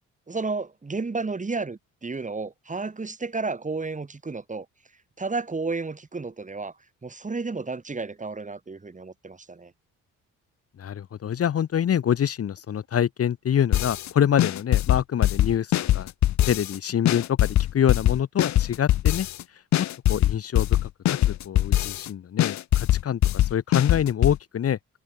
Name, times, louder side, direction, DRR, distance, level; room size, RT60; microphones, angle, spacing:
voice 1, 0.3-4.7 5.2-6.7 7.0-9.7, right 3 dB, 25° right, 5.2 m, -32 dB
voice 2, 10.8-16.1 16.5-19.3 19.8-21.2 21.4-24.8, left 9 dB, 50° left, 1.4 m, -26 dB
sound 1, 13.7-14.1 14.4-16.8 17.1-19.4 19.7-22.1 22.4-24.4, left 13 dB, 65° left, 0.9 m, -22 dB
cardioid pair, 90°, 30 cm